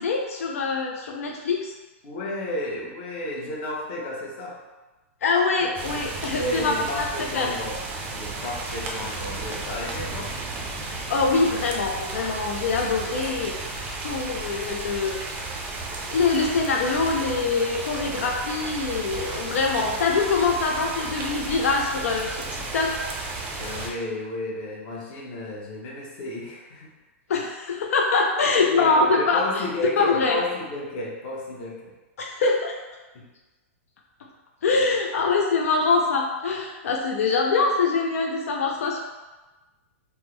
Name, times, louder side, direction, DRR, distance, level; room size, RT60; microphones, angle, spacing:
voice 1, 0.0-1.7 5.2-7.6 11.1-15.3 16.1-22.9 27.3-30.4 32.2-32.8 34.6-39.0, left 4 dB, 85° left, 1 dB, 0.4 m, -24 dB
voice 2, 2.0-4.6 5.6-6.0 6.3-7.7 8.1-10.3 23.6-26.9 27.3-27.5 28.6-31.9 33.1-33.2, left 1 dB, 40° left, -3 dB, 0.8 m, -32 dB
sound 1, 5.7-23.9, right 3 dB, 25° right, 0.4 m, -33 dB
3.4 x 2.0 x 3.1 m, 1.2 s
hypercardioid pair, 155°, 8 cm